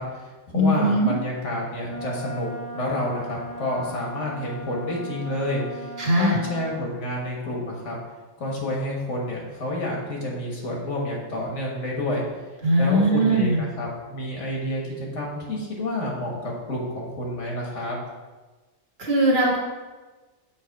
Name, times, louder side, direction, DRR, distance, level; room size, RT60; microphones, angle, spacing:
voice 1, 0.0-8.0 8.4-12.2 12.8-18.0, left 1 dB, 85° left, -2 dB, 1.8 m, -29 dB
voice 2, 0.5-1.2 6.0-6.4 12.6-13.6 19.0-19.6, right 1 dB, 55° right, -4 dB, 1.7 m, -20 dB
Wind instrument woodwind instrument, 1.8-6.8, right 2 dB, 80° right, 1.5 m, -37 dB
7.4 x 3.3 x 4.6 m, 1.2 s
omnidirectional pair, 1.2 m